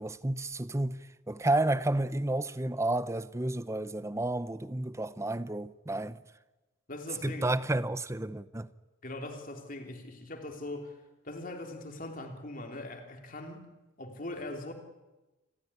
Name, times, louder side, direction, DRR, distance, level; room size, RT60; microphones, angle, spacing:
voice 1, 0.0-6.2 7.2-8.7, right 2 dB, 15° right, 0.7 m, -31 dB
voice 2, 6.9-7.5 9.0-11.0 11.2-13.7 14.0-14.7, left 2 dB, 45° left, 3.3 m, -41 dB
28.0 x 14.5 x 9.8 m
head